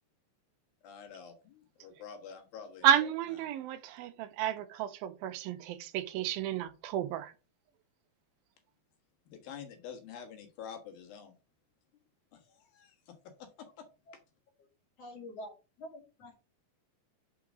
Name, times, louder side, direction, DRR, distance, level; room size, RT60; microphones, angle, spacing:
voice 1, 0.8-3.1 9.3-11.3 12.3-13.1 13.4-13.9, left 7 dB, 70° left, 3.2 m, -48 dB
voice 2, 2.8-7.3, right 10 dB, 80° right, 2.6 m, -31 dB
voice 3, 15.0-16.3, left 1 dB, 50° left, 2.7 m, -47 dB
6.3 x 4.8 x 6.3 m
omnidirectional pair, 4.3 m